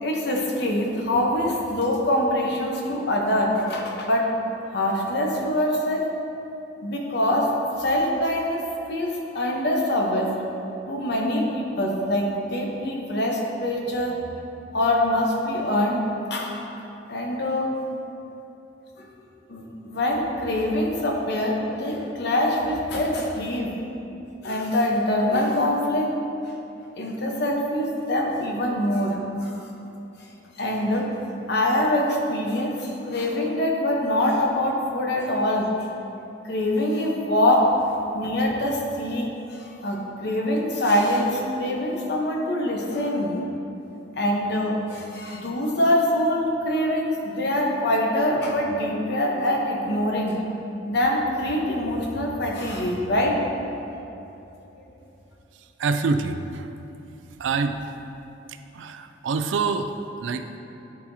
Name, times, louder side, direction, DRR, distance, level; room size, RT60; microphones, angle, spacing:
voice 1, 0.0-4.3 4.7-6.1 6.8-7.5 7.8-8.6 8.9-10.3 10.9-14.2 14.7-16.5 17.1-17.7 19.0-19.1 19.5-23.7 24.4-26.1 27.0-29.7 30.6-31.1 31.5-35.7 36.4-37.7 38.1-43.3 44.2-50.4 50.8-53.4 53.9-54.0, left 1 dB, 60° left, 0 dB, 0.9 m, -24 dB
voice 2, 55.8-56.7 57.4-57.8 58.7-59.9 60.2-60.5, right 4 dB, 80° right, 7 dB, 0.4 m, -25 dB
10.5 x 4.2 x 2.7 m, 2.9 s
head